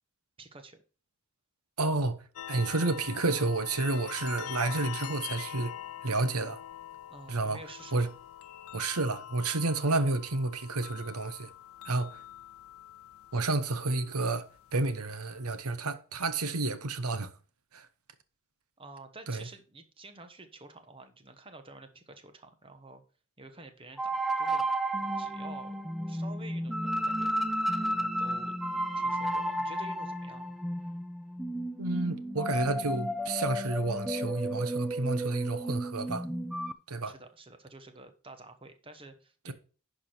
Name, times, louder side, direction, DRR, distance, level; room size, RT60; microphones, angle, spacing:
voice 1, 0.4-0.8 7.1-8.1 18.8-23.0 23.4-24.7 25.1-27.3 27.9-28.6 28.9-30.5 37.0-39.5, right 2 dB, 25° right, 1.1 m, -50 dB
voice 2, 1.8-5.7 6.0-6.6 7.3-7.6 7.9-8.1 8.7-11.5 11.8-12.2 13.3-14.5 14.7-17.3 17.7-17.9 19.3-19.5 31.8-36.3 36.9-37.1 39.4-39.5, right 2 dB, 80° right, 1.0 m, -30 dB
sound 1, 2.4-15.7, left 11 dB, 70° left, 0.5 m, -44 dB
sound 2, 24.0-36.7, right 1 dB, ahead, 0.4 m, -32 dB
11.0 x 4.8 x 4.4 m
head